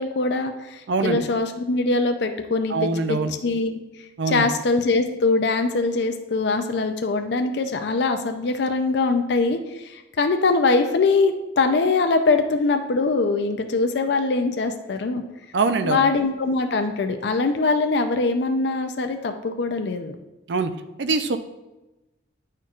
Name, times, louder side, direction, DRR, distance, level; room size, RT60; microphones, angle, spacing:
voice 1, 0.0-3.8 4.3-15.2 15.8-20.1, left 3 dB, 65° left, 6 dB, 0.4 m, -22 dB
voice 2, 0.9-1.2 2.7-3.3 4.2-4.5 15.5-16.0 20.5-20.7 21.0-21.4, right 4 dB, 70° right, 9 dB, 0.5 m, -23 dB
10.5 x 4.4 x 2.4 m, 1.0 s
head